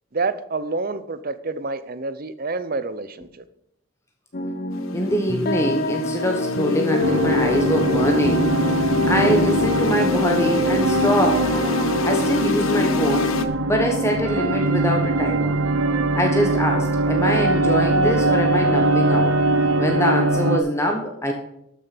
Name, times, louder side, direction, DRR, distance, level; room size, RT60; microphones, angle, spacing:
voice 1, 0.1-3.4, right 3 dB, 45° right, 13 dB, 0.7 m, -28 dB
sound 1, 4.3-9.7, left 3 dB, 45° left, 0.9 m, -25 dB
sound 2, 4.7-13.4, left 4 dB, 75° left, 1.0 m, -27 dB
voice 2, 4.9-11.4 12.0-13.3 13.7-15.6 16.1-19.3 19.8-21.3, equal, 15° left, 2 dB, 1.2 m, -23 dB
sound 3, 7.0-20.6, right 2 dB, 80° right, 1.0 m, -21 dB
12.5 x 6.6 x 6.0 m, 0.78 s
head